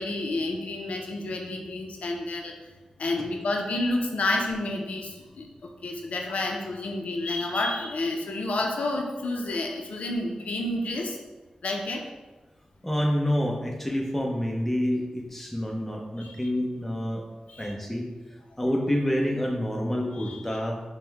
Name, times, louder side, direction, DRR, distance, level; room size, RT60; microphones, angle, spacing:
voice 1, 0.0-2.5 3.0-11.2 11.6-12.0 16.2-16.5 17.5-17.7 20.2-20.6, left 2 dB, 85° left, 2 dB, 0.5 m, -30 dB
voice 2, 12.8-17.2 17.6-18.1 18.6-20.8, equal, 10° left, 0 dB, 0.6 m, -27 dB
5.2 x 2.1 x 3.4 m, 1.2 s
wide cardioid pair, 80°, 2 cm